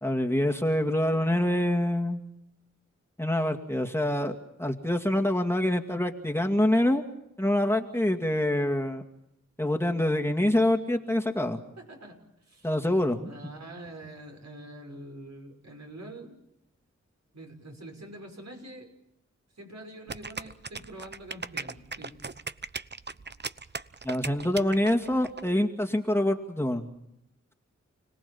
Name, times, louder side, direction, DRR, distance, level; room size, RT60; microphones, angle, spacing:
voice 1, 0.0-2.2 3.2-7.0 7.4-9.0 9.6-11.6 12.6-13.3 24.0-26.9, left 1 dB, 10° left, 2 dB, 2.3 m, -26 dB
voice 2, 11.8-12.7 13.2-16.4 17.3-18.9 19.5-22.3, right 1 dB, 65° right, 3 dB, 6.2 m, -45 dB
sound 1, 20.1-25.4, right 4 dB, 35° right, 0.9 m, -37 dB
29.5 x 18.5 x 7.1 m, 0.81 s
cardioid pair, 45°, 30 cm